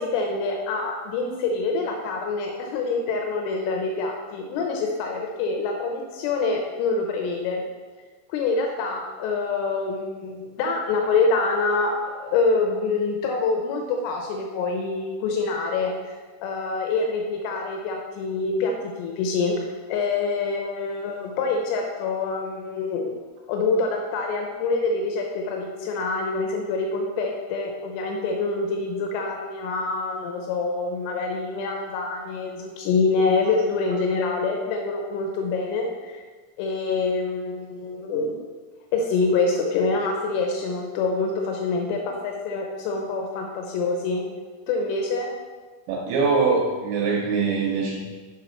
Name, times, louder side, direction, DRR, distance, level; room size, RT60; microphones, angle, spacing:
voice 1, 0.0-7.6 8.3-23.1 23.5-36.2 36.6-38.4 38.9-44.2 44.7-45.3, left 3 dB, 80° left, 2 dB, 3.1 m, -26 dB
voice 2, 45.9-48.0, right 4 dB, 80° right, -1 dB, 2.9 m, -23 dB
6.9 x 5.5 x 4.2 m, 1.4 s
omnidirectional pair, 5.7 m